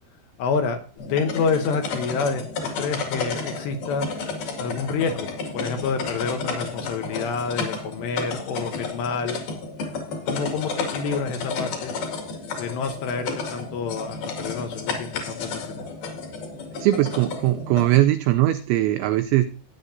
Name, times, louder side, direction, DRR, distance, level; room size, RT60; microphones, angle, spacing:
voice 1, 0.4-2.5 2.8-4.1 4.6-9.4 10.3-11.9 12.6-15.9, left 5 dB, 75° left, 5 dB, 2.7 m, -28 dB
sound 1, 1.0-18.0, left 4 dB, 55° left, 3.4 m, -32 dB
voice 2, 16.8-19.4, right 15 dB, 85° right, 9 dB, 2.6 m, -20 dB
16.0 x 9.5 x 2.7 m, 0.39 s
omnidirectional pair, 5.9 m